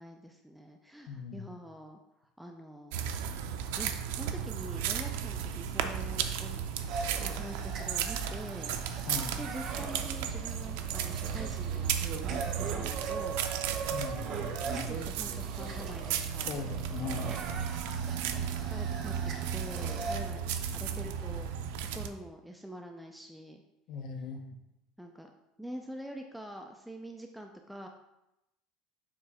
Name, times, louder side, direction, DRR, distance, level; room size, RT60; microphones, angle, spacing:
voice 1, 0.0-3.2 3.8-6.6 7.2-8.7 9.3-13.4 14.3-16.6 18.2-20.5 20.7-21.5 21.8-23.6 25.0-25.3 25.6-27.9, equal, ahead, 3 dB, 0.3 m, -45 dB
voice 2, 1.1-1.5 9.1-9.4 13.9-14.3 16.5-17.3 23.9-24.4, left 5 dB, 45° left, 5 dB, 0.8 m, -39 dB
sound 1, 2.9-22.1, right 8 dB, 85° right, 0.5 m, -35 dB
sound 2, 6.9-20.2, right 4 dB, 40° right, 0.7 m, -40 dB
7.3 x 3.1 x 4.8 m, 0.91 s
cardioid pair, 165°, 0 cm